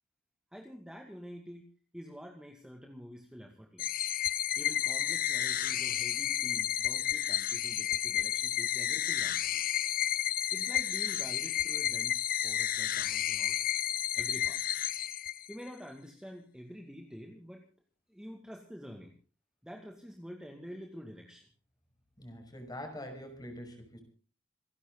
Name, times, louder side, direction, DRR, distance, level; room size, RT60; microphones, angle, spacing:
voice 1, 0.5-1.7 1.9-4.0 4.6-9.5 10.5-13.7 14.1-14.6 15.5-17.6 18.1-19.1 19.6-21.5, equal, 5° right, 1 dB, 2.2 m, -47 dB
sound 1, 3.8-15.7, left 11 dB, 50° left, 0.8 m, -31 dB
voice 2, 22.2-24.0, left 1 dB, 20° left, 4 dB, 5.8 m, -44 dB
28.0 x 11.5 x 4.0 m, 0.39 s
head